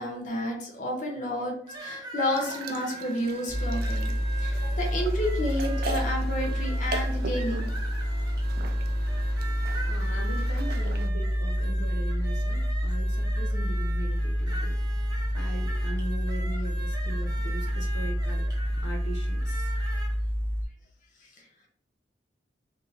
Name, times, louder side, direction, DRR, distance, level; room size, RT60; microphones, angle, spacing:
voice 1, 0.0-1.5 1.8-7.7 21.4-21.5, left 1 dB, 45° left, 0 dB, 0.8 m, -31 dB
sound 1, 1.7-20.1, right 2 dB, 25° right, 0.8 m, -42 dB
sound 2, 2.3-11.1, right 4 dB, 55° right, 0.4 m, -41 dB
sound 3, 3.5-20.6, equal, 10° left, 0.5 m, -28 dB
voice 2, 9.9-14.7 15.0-18.4 18.8-19.7, equal, 90° left, 1 dB, 0.7 m, -40 dB
2.8 x 2.7 x 3.8 m, 0.62 s
head